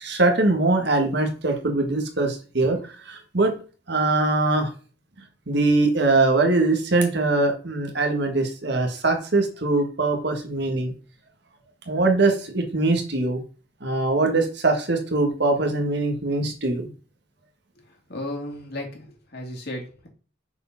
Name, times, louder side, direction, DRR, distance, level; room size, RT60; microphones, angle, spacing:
voice 1, 0.0-3.5 3.9-4.7 5.5-10.9 11.9-13.4 13.8-16.9, right 2 dB, 55° right, 4 dB, 1.7 m, -22 dB
voice 2, 18.1-20.1, left 1 dB, 50° left, 1 dB, 2.5 m, -34 dB
6.7 x 4.7 x 5.9 m, 0.37 s
head